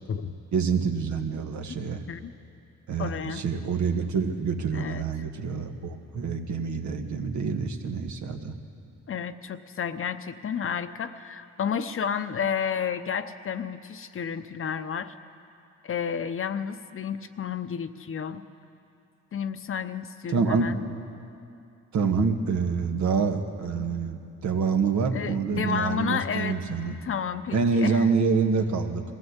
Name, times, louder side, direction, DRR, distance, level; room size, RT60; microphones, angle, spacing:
voice 1, 0.5-2.0 2.9-8.5 20.3-20.7 21.9-27.0 27.5-29.0, right 5 dB, 70° right, 4 dB, 1.6 m, -26 dB
voice 2, 1.8-2.3 3.0-3.4 4.7-5.0 9.1-15.1 15.8-18.4 19.3-20.8 25.1-28.1, left 7 dB, 45° left, 10 dB, 0.9 m, -31 dB
20.5 x 15.5 x 8.2 m, 2.5 s
cardioid pair, 90°, 30 cm